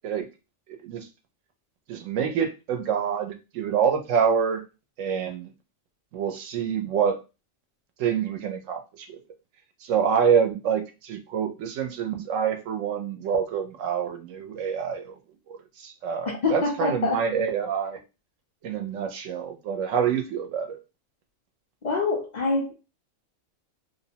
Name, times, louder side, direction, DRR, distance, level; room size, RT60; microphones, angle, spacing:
voice 1, 1.9-4.6 5.0-5.5 6.1-7.2 8.0-8.8 9.9-15.1 15.8-18.0 18.6-20.8, right 7 dB, 75° right, 0.9 m, -26 dB
voice 2, 16.4-17.2 21.8-22.7, left 3 dB, 80° left, 0.4 m, -25 dB
2.6 x 2.0 x 2.7 m
omnidirectional pair, 1.4 m